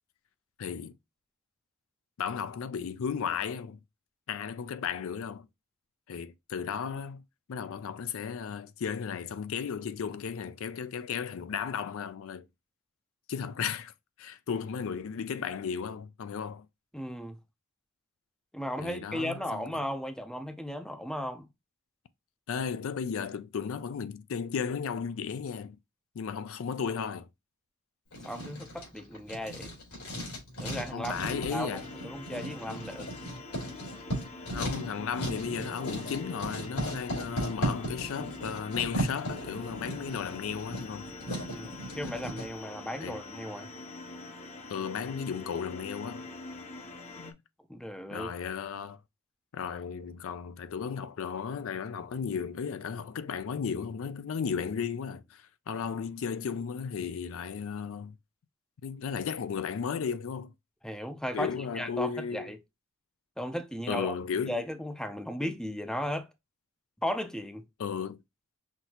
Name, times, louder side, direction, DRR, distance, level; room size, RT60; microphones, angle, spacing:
voice 1, 0.6-0.9 2.2-3.8 4.3-5.5 6.1-7.2 7.5-12.4 13.3-13.9 14.2-16.7 18.8-19.8 22.5-25.8 26.2-27.3 30.9-31.9 34.5-41.1 43.0-43.2 44.7-46.3 47.2-47.4 48.1-49.0 49.5-58.1 58.8-60.5 61.3-62.5 63.9-64.6 67.8-68.2, left 6 dB, 65° left, 0.4 m, -35 dB
voice 2, 16.9-17.4 18.5-21.5 28.2-29.7 30.6-33.1 41.5-43.7 47.7-48.3 60.8-62.6 63.4-64.2 64.4-66.3 67.0-67.6, equal, 5° left, 0.5 m, -36 dB
Writing, 28.1-42.5, equal, 85° left, 3.3 m, -36 dB
sound 1, 31.2-47.3, left 2 dB, 30° left, 0.7 m, -45 dB
5.9 x 2.7 x 2.8 m
head